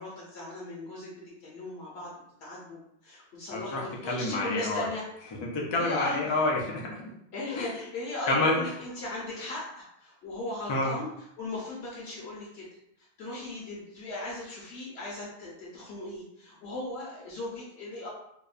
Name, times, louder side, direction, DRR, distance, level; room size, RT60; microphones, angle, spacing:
voice 1, 0.0-2.1 2.4-5.0 5.7-6.2 7.3-11.1 11.4-12.7 13.0-18.1, left 2 dB, 70° left, -5 dB, 0.9 m, -37 dB
voice 2, 3.5-4.9 5.3-7.1 7.5-7.7 8.3-8.6 10.7-11.0, left 2 dB, 50° left, -2 dB, 0.3 m, -29 dB
2.8 x 2.0 x 2.4 m, 0.77 s
omnidirectional pair, 1.2 m